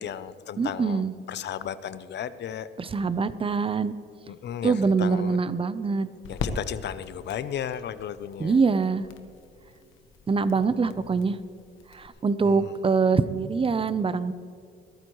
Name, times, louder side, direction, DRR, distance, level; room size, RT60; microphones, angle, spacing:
voice 1, 0.0-1.0 1.3-2.7 4.3-5.4 6.3-8.6 12.4-12.7, left 9 dB, 60° left, 14 dB, 0.6 m, -34 dB
voice 2, 0.6-1.1 2.8-3.9 4.6-6.1 8.4-9.0 10.3-11.4 11.9-14.3, right 4 dB, 25° right, 14 dB, 0.7 m, -24 dB
sound 1, 4.2-12.1, left 5 dB, 85° left, 1.1 m, -41 dB
21.0 x 13.0 x 3.1 m, 2.3 s
cardioid pair, 90°, 20 cm